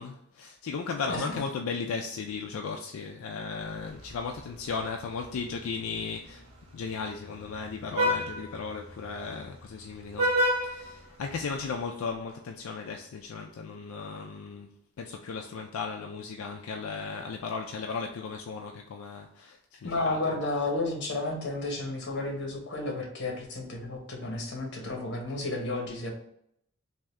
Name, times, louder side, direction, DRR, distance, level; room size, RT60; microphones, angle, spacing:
voice 1, 0.0-6.5 6.7-14.7 15.0-20.4, left 5 dB, 80° left, 0.4 m, -36 dB
Vehicle horn car horn honking, 3.7-11.8, equal, 90° right, 1.1 m, -33 dB
voice 2, 19.8-26.1, left 2 dB, 55° left, 1.0 m, -32 dB
3.6 x 2.6 x 3.2 m
head